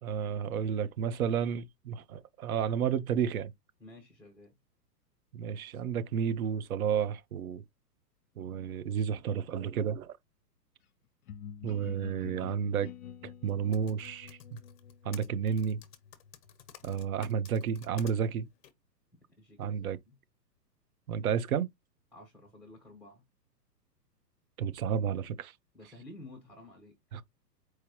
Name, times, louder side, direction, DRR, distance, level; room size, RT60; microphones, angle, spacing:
voice 1, 0.0-3.5 5.3-7.6 8.4-10.1 11.6-12.9 13.4-14.6 15.0-15.8 16.8-18.5 19.6-20.0 21.1-21.7 24.6-25.5 27.1-27.2, right 7 dB, 60° right, 0.7 m, -31 dB
voice 2, 3.8-4.5 19.4-20.1 22.1-23.2 25.7-26.9, left 2 dB, ahead, 1.2 m, -52 dB
sound 1, 11.3-16.9, left 8 dB, 60° left, 0.7 m, -48 dB
Typing, 13.5-18.1 18.6-18.7, left 9 dB, 35° left, 1.0 m, -52 dB
4.6 x 3.1 x 3.0 m
hypercardioid pair, 125°, 49 cm